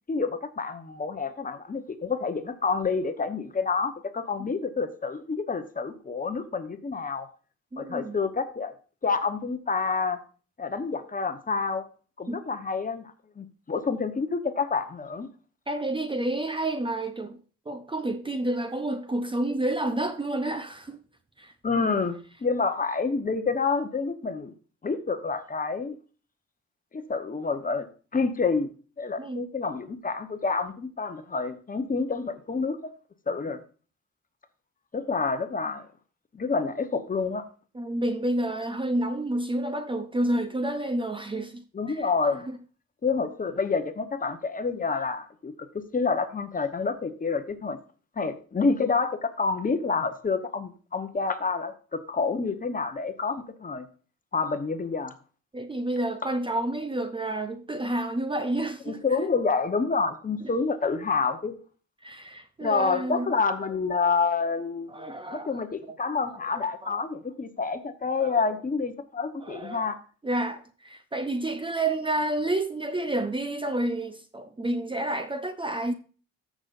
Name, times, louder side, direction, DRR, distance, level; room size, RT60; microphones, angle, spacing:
voice 1, 0.1-7.3 7.8-8.7 9.0-10.2 10.6-11.8 12.2-15.3 21.6-24.5 24.8-26.0 26.9-27.9 28.1-28.7 29.0-32.8 33.3-33.6 34.9-35.9 36.3-37.4 41.7-42.5 43.0-47.8 48.2-53.9 54.3-55.1 58.9-61.5 62.6-70.0, left 4 dB, 30° left, 1.1 m, -28 dB
voice 2, 7.7-8.2 12.3-12.4 15.7-17.4 17.7-21.0 21.4-21.9 29.2-29.5 37.7-42.1 42.5-42.6 55.5-59.3 62.0-63.3 64.9-65.5 66.8-67.0 68.2-68.4 69.4-69.9 70.2-75.9, right 1 dB, 15° right, 0.7 m, -30 dB
14.0 x 6.3 x 2.6 m
cardioid pair, 90°, 30 cm